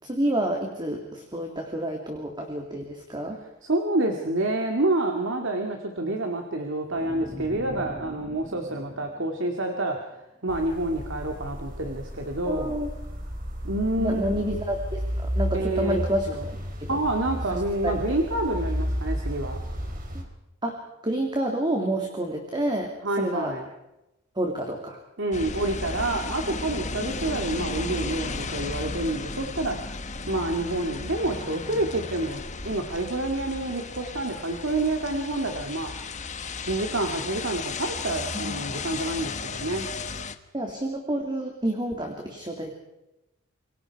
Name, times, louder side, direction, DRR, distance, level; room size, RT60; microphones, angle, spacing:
voice 1, 0.0-3.4 12.5-12.9 14.0-17.0 17.5-18.0 20.1-20.2 20.6-20.8 21.0-22.9 23.2-23.5 24.3-25.0 38.3-38.6 40.5-42.7, right 1 dB, 20° right, 2 dB, 2.9 m, -29 dB
voice 2, 3.6-10.1 10.4-12.8 13.6-14.5 15.5-16.0 16.3-16.4 16.9-19.6 23.0-23.6 25.2-29.8 30.3-36.1 36.6-39.9, right 2 dB, 65° right, 3 dB, 2.5 m, -28 dB
sound 1, 6.9-10.2, equal, 5° right, 2.0 m, -42 dB
sound 2, 10.5-20.2, equal, 45° right, 4.4 m, -32 dB
sound 3, 25.3-40.4, left 4 dB, 35° left, 1.2 m, -34 dB
28.5 x 23.5 x 4.9 m, 0.92 s
head